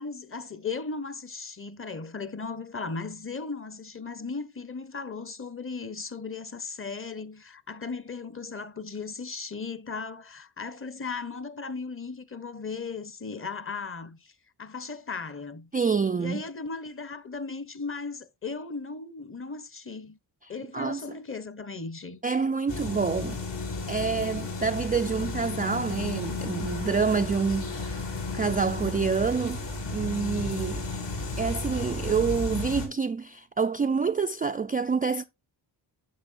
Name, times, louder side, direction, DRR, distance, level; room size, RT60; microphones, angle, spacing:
voice 1, 0.0-14.3 14.6-15.7 16.2-20.2 20.5-22.2, left 4 dB, 30° left, 0.9 m, -37 dB
voice 2, 15.7-16.4 20.7-21.0 22.2-23.4 23.9-29.6 29.9-30.8 31.4-35.2, right 5 dB, 20° right, 0.3 m, -27 dB
sound 1, 22.7-32.9, left 3 dB, 70° left, 3.5 m, -33 dB
9.5 x 7.0 x 2.5 m
cardioid pair, 80°, 46 cm